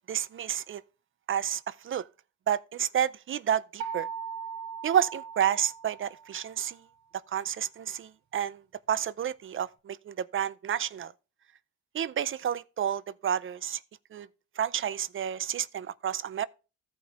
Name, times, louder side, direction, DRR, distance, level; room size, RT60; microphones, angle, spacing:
voice 1, 0.1-0.8 1.3-2.0 2.5-4.1 4.8-6.8 7.3-8.6 8.9-11.1 11.9-13.8 14.1-14.3 14.6-16.5, right 9 dB, 45° right, 0.5 m, -30 dB
sound 1, 3.8-6.6, right 7 dB, 65° right, 1.8 m, -39 dB
14.5 x 5.1 x 3.0 m
cardioid pair, 90°, 30 cm